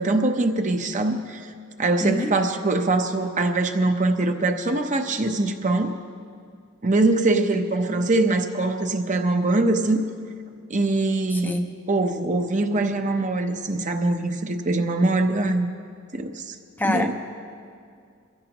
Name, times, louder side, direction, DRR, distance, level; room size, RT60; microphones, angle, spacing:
voice 1, 0.0-1.4 1.8-6.0 6.8-10.0 10.7-11.6 11.9-15.7 16.1-16.5 16.8-17.1, right 2 dB, 40° right, 5 dB, 0.8 m, -23 dB
voice 2, 2.0-2.3 11.4-11.7 16.8-17.1, left 1 dB, 10° left, 4 dB, 0.6 m, -24 dB
23.5 x 15.5 x 3.0 m, 2.3 s
head